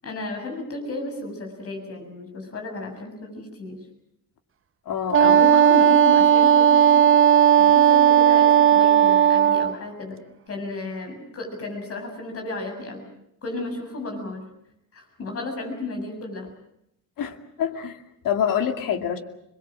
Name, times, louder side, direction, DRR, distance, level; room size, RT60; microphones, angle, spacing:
voice 1, 0.0-3.8 5.2-7.1 7.6-10.2 10.5-13.1 13.4-14.5 14.9-16.5, left 2 dB, 45° left, 4 dB, 7.4 m, -33 dB
voice 2, 4.9-5.4 17.2-19.2, left 8 dB, 85° left, 6 dB, 2.5 m, -26 dB
Wind instrument woodwind instrument, 5.1-9.8, right 9 dB, 40° right, 1.0 m, -15 dB
27.0 x 22.0 x 7.7 m, 0.79 s
cardioid pair, 160°, 32 cm